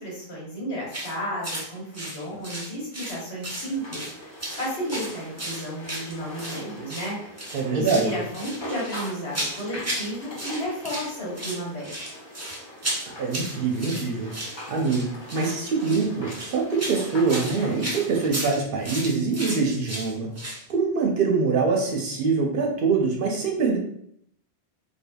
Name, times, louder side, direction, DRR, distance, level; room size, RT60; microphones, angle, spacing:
voice 1, 0.0-7.2 7.5-12.0, equal, 75° left, -5 dB, 1.4 m, -33 dB
sound 1, 0.9-1.1 1.4-1.7 1.9-3.2 3.4-4.1 4.4-6.6 6.9-7.1 7.4-8.1 8.3-10.1 10.3-11.1 11.3-20.6, right 1 dB, 20° right, 0.4 m, -34 dB
sound 2, 3.6-18.3, left 1 dB, 30° left, 0.6 m, -41 dB
voice 2, 7.5-8.1 13.2-20.3 20.7-23.8, right 4 dB, 65° right, 0 dB, 0.7 m, -24 dB
3.3 x 2.2 x 2.2 m, 0.69 s
omnidirectional pair, 1.1 m